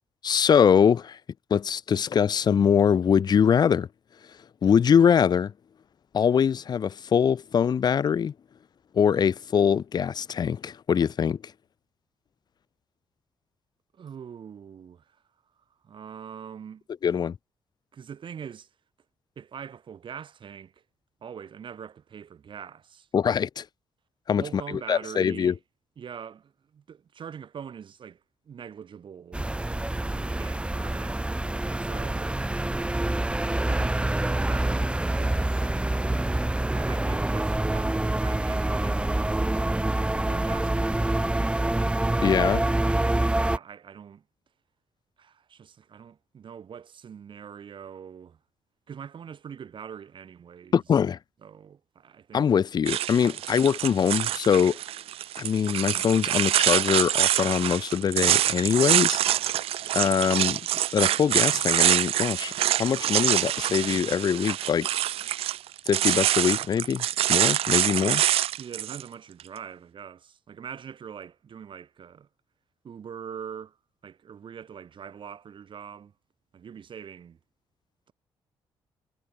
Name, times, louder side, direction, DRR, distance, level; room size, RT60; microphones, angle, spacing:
voice 1, 0.2-1.2 1.5-3.9 4.6-5.5 6.1-8.3 8.9-11.4 17.0-17.4 23.1-23.6 24.3-24.6 24.9-25.5 42.2-42.6 50.7-51.2 52.3-54.8 55.4-59.2 59.9-60.6 60.9-64.9 65.9-68.2, left 7 dB, 45° left, 0.6 m, -23 dB
voice 2, 13.9-15.2 15.8-16.8 17.9-18.7 19.3-20.8 21.2-23.1 24.4-25.6 26.0-29.4 29.9-31.2 31.8-32.3 33.3-39.4 40.3-41.1 43.2-44.2 45.2-48.4 48.9-50.8 51.4-52.5 53.2-53.4 65.2-65.3 68.6-72.3 72.8-73.8 74.0-76.1 76.5-77.4, right 7 dB, 55° right, 5.0 m, -43 dB
sound 1, 29.3-43.6, right 1 dB, 10° right, 2.0 m, -26 dB
sound 2, 52.9-69.0, right 12 dB, 75° right, 0.4 m, -25 dB
cardioid pair, 100°, 10 cm